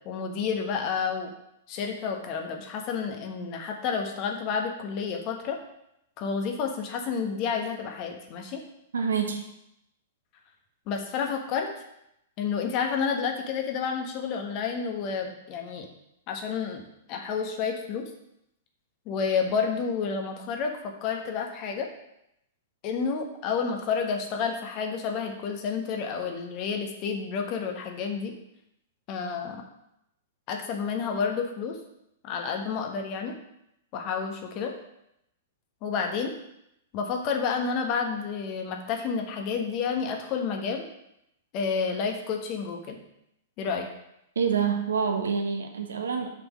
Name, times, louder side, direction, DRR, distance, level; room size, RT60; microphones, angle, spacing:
voice 1, 0.0-1.3 1.7-5.6 6.2-8.6 10.9-11.7 12.4-15.9 16.3-16.8 17.1-18.1 19.0-20.7 21.0-21.9 22.8-28.3 29.1-29.6 30.5-31.8 32.2-33.3 33.9-34.7 35.8-36.3 36.9-40.9 41.5-43.0 43.6-43.9, left 6 dB, 35° left, 3 dB, 1.4 m, -30 dB
voice 2, 8.9-9.4 44.3-46.3, right 6 dB, 65° right, 4 dB, 1.2 m, -27 dB
6.5 x 5.6 x 6.0 m, 0.80 s
figure-of-eight pair, 105°, 0 cm